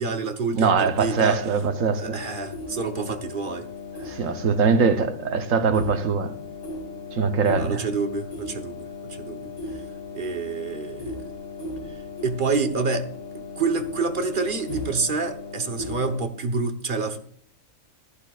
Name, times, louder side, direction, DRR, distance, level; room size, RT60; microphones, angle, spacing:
voice 1, 0.0-1.4 2.0-3.7 4.1-4.3 7.6-9.8 10.1-11.2 12.2-13.1 13.3-17.2, right 4 dB, 40° right, 1.0 m, -28 dB
voice 2, 0.5-2.2 4.0-6.3 7.1-7.9, right 5 dB, 70° right, 1.3 m, -22 dB
sound 1, 0.9-16.2, left 3 dB, 70° left, 4.4 m, -37 dB
15.0 x 11.5 x 2.4 m
omnidirectional pair, 1.5 m